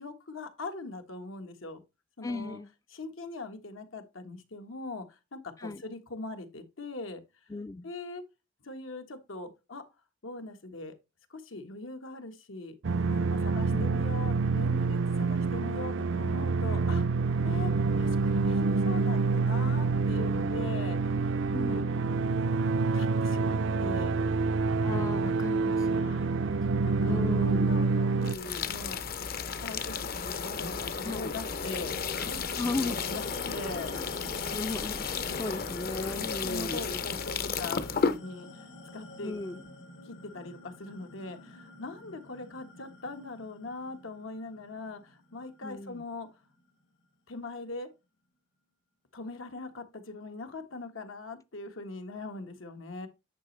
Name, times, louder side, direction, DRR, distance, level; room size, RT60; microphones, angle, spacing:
voice 1, 0.0-1.8 2.2-2.6 2.9-7.2 7.8-8.2 8.6-9.8 10.2-10.9 11.3-12.8 13.1-17.0 17.3-17.7 18.0-21.0 21.5-21.8 22.9-24.2 24.9-25.1 25.9-26.3 26.6-26.7 27.0-29.0 29.6-33.2 33.5-33.9 35.9-38.7 38.9-39.4 40.0-46.3 47.3-47.9 49.1-53.1, left 2 dB, 85° left, 1.4 m, -41 dB
voice 2, 2.2-2.7 5.6-5.8 7.5-7.9 13.7-13.9 21.5-22.0 24.8-26.2 27.1-27.8 31.0-31.3 32.6-33.0 34.0-34.1 34.5-36.8 39.2-39.6 45.6-46.0, left 2 dB, 15° left, 0.3 m, -36 dB
sound 1, 12.8-28.3, right 4 dB, 70° right, 0.5 m, -27 dB
sound 2, 28.2-38.2, left 5 dB, 50° left, 0.7 m, -33 dB
sound 3, 31.9-46.7, left 2 dB, 70° left, 3.2 m, -47 dB
9.9 x 5.1 x 3.2 m
head